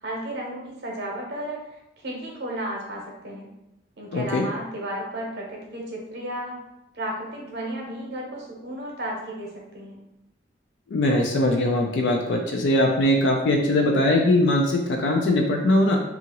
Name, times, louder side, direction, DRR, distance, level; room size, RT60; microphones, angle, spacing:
voice 1, 0.0-3.5 4.0-6.6 6.9-9.5 9.7-10.0, right 1 dB, 60° right, -1 dB, 0.7 m, -33 dB
voice 2, 4.1-4.4 10.9-16.0, left 1 dB, 75° left, 1 dB, 0.4 m, -21 dB
2.8 x 2.4 x 2.8 m, 0.87 s
head